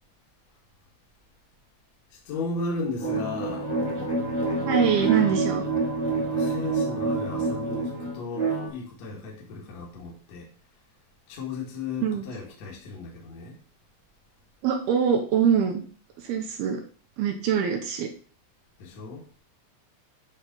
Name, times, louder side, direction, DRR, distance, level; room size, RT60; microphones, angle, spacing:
voice 1, 2.1-3.7 6.2-10.5 11.3-13.6 18.8-19.2, left 3 dB, 50° left, 2.6 m, -35 dB
sound 1, 3.0-8.7, right 3 dB, 25° left, 0.4 m, -27 dB
voice 2, 4.7-5.6 12.0-12.2 14.6-15.8 16.2-16.8 17.2-18.1, right 7 dB, 75° right, 2.6 m, -24 dB
8.8 x 4.0 x 5.4 m
omnidirectional pair, 5.1 m